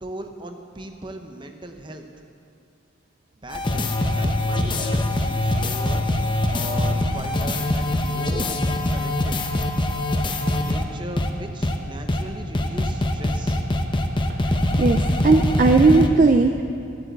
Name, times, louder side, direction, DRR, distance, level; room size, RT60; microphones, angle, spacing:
voice 1, 0.0-2.0 3.4-6.1 6.5-8.5 8.9-9.4 10.5-13.6, right 1 dB, 25° right, 5 dB, 0.8 m, -38 dB
sound 1, 3.5-10.8 11.2-11.3 11.6-11.7 12.1-12.2 12.5-16.1, left 1 dB, 25° left, 0.7 m, -23 dB
voice 2, 14.8-16.6, right 3 dB, 40° right, 6 dB, 0.4 m, -17 dB
11.5 x 8.3 x 8.0 m, 2.6 s
head